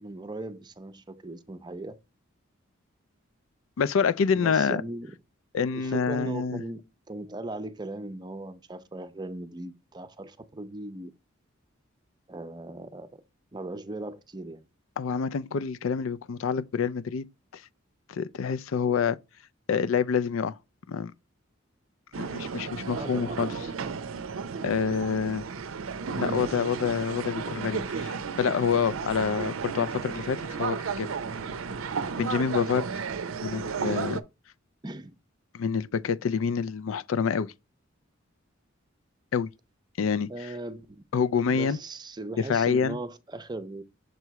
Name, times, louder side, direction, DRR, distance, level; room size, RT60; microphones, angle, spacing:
voice 1, 0.0-2.0 4.3-5.1 5.7-6.8 7.1-11.1 12.3-13.2 13.5-14.6 22.9-23.4 34.8-35.1 40.3-41.0 41.4-43.8, right 2 dB, 20° right, 0.5 m, -38 dB
voice 2, 3.8-4.8 5.5-6.6 15.0-17.3 17.5-17.6 18.1-19.2 19.7-20.6 20.9-21.1 22.2-23.5 24.6-25.5 26.2-31.1 32.2-32.9 33.4-34.2 35.5-37.5 39.3-39.5 40.0-40.3 41.1-41.8 42.4-43.0, left 6 dB, 80° left, 0.4 m, -27 dB
sound 1, 22.1-34.2, right 5 dB, 80° right, 0.5 m, -33 dB
6.7 x 3.1 x 4.6 m
head